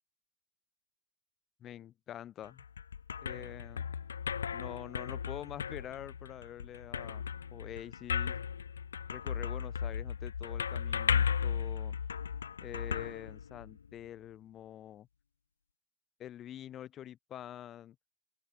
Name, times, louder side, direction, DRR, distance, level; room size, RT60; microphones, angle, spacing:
voice 1, 1.6-2.6 3.2-3.9 4.5-8.4 9.1-12.0 12.6-15.1 16.2-18.0, left 11 dB, 30° left, 4.2 m, -46 dB
sound 1, 2.4-13.9, left 7 dB, 85° left, 1.5 m, -36 dB
open air
hypercardioid pair, 120°, 0 cm